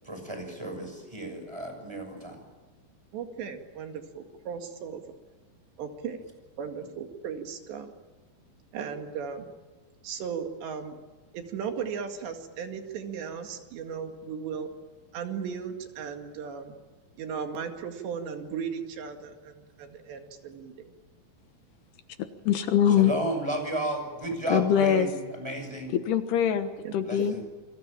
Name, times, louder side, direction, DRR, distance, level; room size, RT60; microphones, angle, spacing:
voice 1, 0.0-2.4 23.0-25.9 27.0-27.4, right 1 dB, 5° right, 4 dB, 6.3 m, -33 dB
voice 2, 3.1-5.0 5.8-6.2 6.6-7.9 8.7-9.5 10.0-11.0 11.3-14.7 15.1-16.7 17.2-20.7 24.5-25.1 26.8-26.9 27.2-27.3, right 7 dB, 80° right, 5 dB, 4.3 m, -36 dB
voice 3, 22.5-23.1 24.5-25.1 25.9-27.4, left 9 dB, 75° left, 9 dB, 3.3 m, -23 dB
28.5 x 23.5 x 8.9 m, 1.3 s
omnidirectional pair, 5.0 m